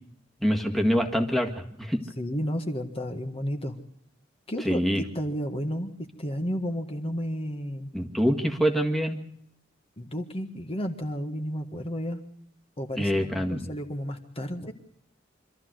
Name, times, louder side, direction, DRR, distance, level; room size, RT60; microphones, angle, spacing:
voice 1, 0.4-2.0 4.6-5.0 7.9-9.2 13.0-13.7, equal, ahead, 3 dB, 1.8 m, -25 dB
voice 2, 2.2-3.7 4.5-5.9 6.2-7.9 10.0-12.2 12.8-14.7, equal, 30° left, 5 dB, 1.6 m, -32 dB
25.5 x 13.5 x 7.8 m, 0.69 s
head